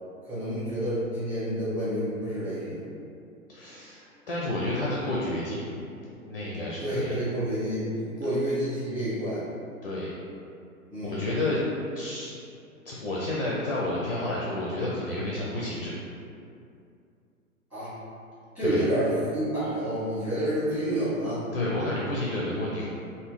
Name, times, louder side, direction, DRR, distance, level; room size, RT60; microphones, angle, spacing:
voice 1, 0.2-2.8 6.8-9.5 10.9-11.3 17.7-17.9 18.5-21.4, right 1 dB, 5° right, -14 dB, 1.5 m, -29 dB
voice 2, 3.5-5.7 6.2-7.2 9.8-10.1 11.0-11.6 11.9-12.3 12.9-15.9 18.6-18.8 21.5-22.9, left 1 dB, 45° left, -5 dB, 0.5 m, -30 dB
3.5 x 2.2 x 3.2 m, 2.5 s
figure-of-eight pair, 115°, 43 cm